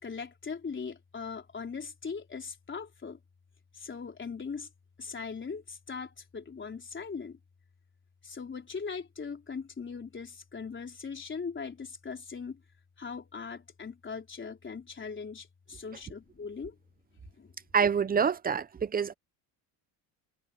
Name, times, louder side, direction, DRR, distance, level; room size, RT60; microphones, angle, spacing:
voice 1, 0.0-3.2 3.7-4.7 5.0-7.4 8.2-12.6 13.0-16.8 17.4-17.5, left 5 dB, 25° left, 4.2 m, -40 dB
voice 2, 17.7-19.1, right 6 dB, 20° right, 0.7 m, -26 dB
cardioid pair, 115°, 44 cm